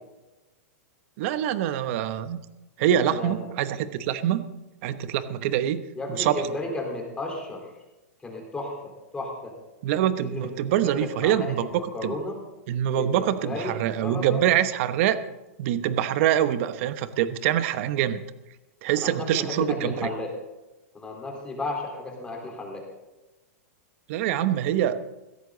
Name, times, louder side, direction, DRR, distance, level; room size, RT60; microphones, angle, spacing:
voice 1, 1.2-2.4 2.8-4.5 4.8-5.8 6.1-6.4 9.8-11.7 12.0-12.1 12.7-15.2 15.6-18.2 18.8-20.1 24.1-25.0, right 11 dB, 55° right, 12 dB, 1.0 m, -25 dB
voice 2, 3.0-3.5 5.9-7.7 8.2-9.5 10.2-10.5 10.8-12.4 12.9-13.7 14.0-14.4 18.9-20.3 20.9-22.8, left 2 dB, 10° left, 0 dB, 4.1 m, -34 dB
16.0 x 14.5 x 4.0 m, 1.0 s
hypercardioid pair, 140°, 8 cm